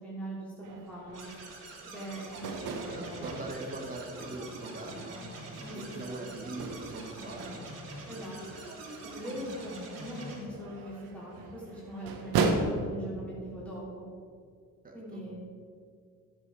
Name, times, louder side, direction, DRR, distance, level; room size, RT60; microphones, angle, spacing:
voice 1, 0.0-1.3 1.9-3.4 5.6-5.9 8.1-8.6 9.0-14.1 14.9-15.4, right 1 dB, 5° left, -8 dB, 3.1 m, -41 dB
sound 1, 0.6-12.5, right 5 dB, 85° right, 1.5 m, -38 dB
sound 2, 1.1-10.4, right 2 dB, 45° right, 3.4 m, -45 dB
voice 2, 2.8-7.7 14.8-15.2, right 2 dB, 25° right, 0 dB, 1.8 m, -41 dB
13.0 x 7.9 x 4.9 m, 2.2 s
cardioid pair, 125°, 35 cm